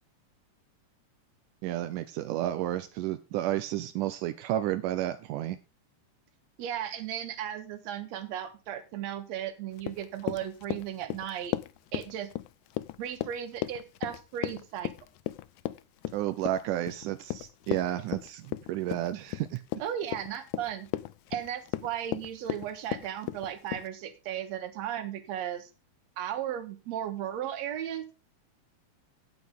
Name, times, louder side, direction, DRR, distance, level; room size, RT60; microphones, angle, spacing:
voice 1, 1.6-5.6 16.1-19.6, right 13 dB, 85° right, 10 dB, 2.2 m, -31 dB
voice 2, 6.6-11.6 11.9-12.3 13.0-14.9 19.8-20.9 21.3-25.7 26.2-28.0, right 10 dB, 65° right, 9 dB, 2.4 m, -36 dB
Run, 9.8-23.9, left 15 dB, 80° left, 2.0 m, -36 dB
16.5 x 6.0 x 3.7 m, 0.30 s
omnidirectional pair, 3.6 m